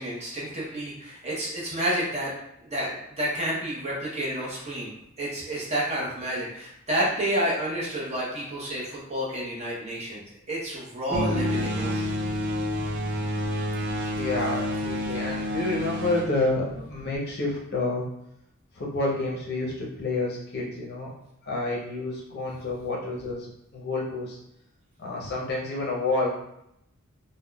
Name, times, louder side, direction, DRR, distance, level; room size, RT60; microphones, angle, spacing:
voice 1, 0.0-2.3 2.6-4.9 5.2-10.2 10.5-12.1, right 1 dB, 30° right, -5 dB, 0.8 m, -30 dB
sound 1, 11.1-15.2, left 1 dB, ahead, 1.2 m, -38 dB
sound 2, 11.1-17.2, equal, 55° right, 0.4 m, -29 dB
voice 2, 14.1-18.1 18.7-21.1 21.4-23.5 23.7-24.4 25.0-26.3, left 2 dB, 50° left, -3 dB, 0.6 m, -29 dB
3.5 x 2.1 x 2.2 m, 0.79 s
head